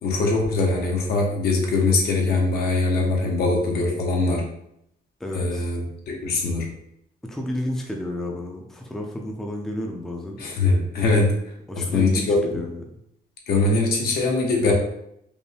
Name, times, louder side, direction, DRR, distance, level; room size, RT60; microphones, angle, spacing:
voice 1, 0.0-4.5 5.3-6.7 10.4-11.3 11.7-12.6 13.5-14.7, left 3 dB, 75° left, -1 dB, 1.0 m, -22 dB
voice 2, 5.2-5.7 7.2-10.4 11.7-12.8, left 1 dB, 5° left, 0 dB, 0.5 m, -31 dB
5.1 x 2.1 x 3.3 m, 0.77 s
cardioid pair, 155°, 16 cm